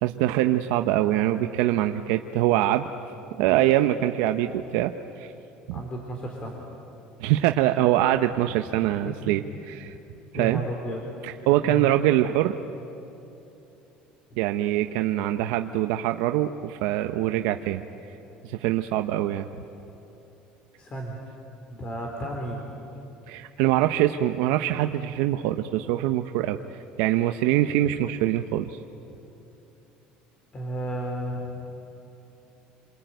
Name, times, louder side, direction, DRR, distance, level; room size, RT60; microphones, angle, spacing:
voice 1, 0.0-2.9 3.4-4.9 5.2-5.3 5.7-5.8 7.2-9.9 10.3-10.6 11.2-12.6 14.4-17.8 18.4-19.5 23.3-26.6 27.0-28.8, right 13 dB, 85° right, 7 dB, 0.8 m, -24 dB
voice 2, 5.7-6.6 9.2-9.3 10.3-11.0 11.6-11.9 20.8-21.2 21.7-22.7 30.5-31.5, right 1 dB, 30° left, 1 dB, 3.9 m, -33 dB
29.0 x 22.0 x 9.2 m, 3.0 s
cardioid pair, 125°, 3 cm